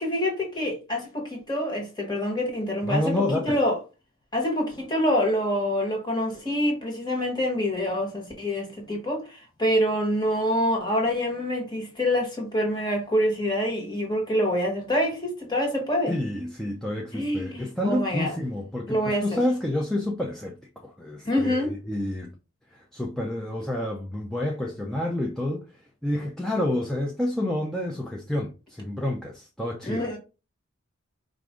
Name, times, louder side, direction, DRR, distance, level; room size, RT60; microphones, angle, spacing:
voice 1, 0.0-3.1 3.4-3.8 4.3-16.1 17.1-18.3 18.9-19.2 21.2-21.8 29.8-30.2, equal, 20° left, 1.4 m, -26 dB
voice 2, 2.9-3.6 16.1-22.3 22.7-30.1, left 1 dB, ahead, 0.4 m, -29 dB
4.8 x 2.5 x 3.6 m
head